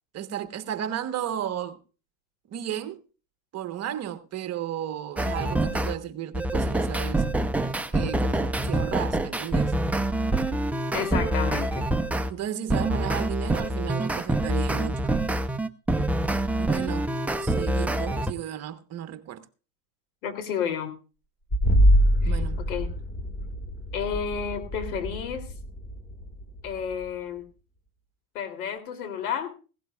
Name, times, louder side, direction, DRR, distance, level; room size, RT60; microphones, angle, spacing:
voice 1, 0.1-1.8 2.5-3.0 3.5-7.3 7.9-9.8 12.3-15.2 16.6-17.1 17.4-19.4 22.2-22.6, right 10 dB, 35° right, 1.3 m, -34 dB
sound 1, 5.2-6.0 6.3-12.3 12.7-18.3, right 1 dB, 5° right, 0.7 m, -26 dB
voice 2, 10.9-11.8 20.2-20.9 22.2-22.9 23.9-25.5 26.6-27.4 28.3-29.5, left 7 dB, 80° left, 3.3 m, -31 dB
sound 2, 21.5-27.1, equal, 20° left, 2.0 m, -24 dB
17.0 x 17.0 x 2.4 m
supercardioid pair, 110°, 43 cm